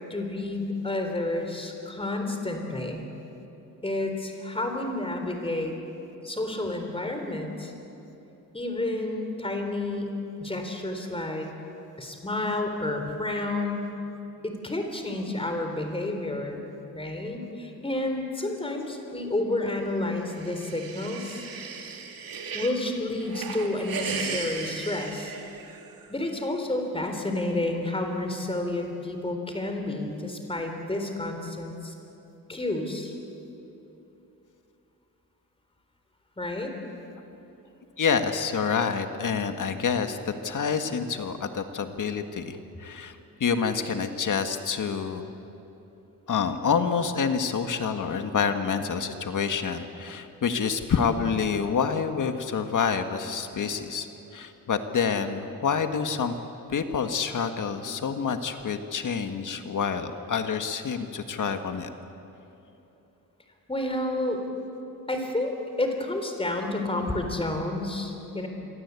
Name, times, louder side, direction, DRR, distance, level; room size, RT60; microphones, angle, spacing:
voice 1, 0.1-3.0 3.8-5.7 6.2-7.7 8.5-10.1 10.4-11.5 12.0-13.9 14.4-16.6 16.9-21.4 22.5-25.3 26.1-31.9 32.5-33.1 36.4-36.7 63.7-64.4 65.1-68.5, left 2 dB, 15° left, 4 dB, 3.9 m, -30 dB
sound 1, 20.1-22.8 23.2-26.1, right 5 dB, 75° right, 3.0 m, -36 dB
voice 2, 38.0-45.3 46.3-54.1 54.3-56.4 56.7-61.9, left 6 dB, 60° left, 7 dB, 1.8 m, -27 dB
28.0 x 23.5 x 8.4 m, 3.0 s
wide cardioid pair, 130°, 35 cm